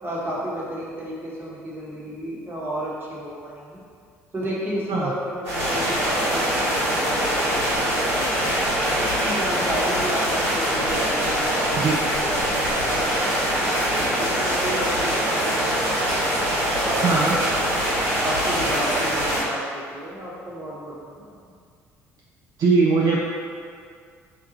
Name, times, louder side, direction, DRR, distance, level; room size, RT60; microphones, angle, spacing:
voice 1, 0.0-3.8 4.3-8.5 9.0-12.6 12.9-13.2 13.5-17.8 18.2-21.4, equal, 30° right, -6 dB, 1.1 m, -32 dB
sound 1, 5.4-19.4, equal, 85° right, 1.3 m, -23 dB
voice 2, 17.0-17.3 22.6-23.2, right 4 dB, 50° right, -4 dB, 0.4 m, -20 dB
2.8 x 2.3 x 3.9 m, 2.2 s
hypercardioid pair, 55°, 8 cm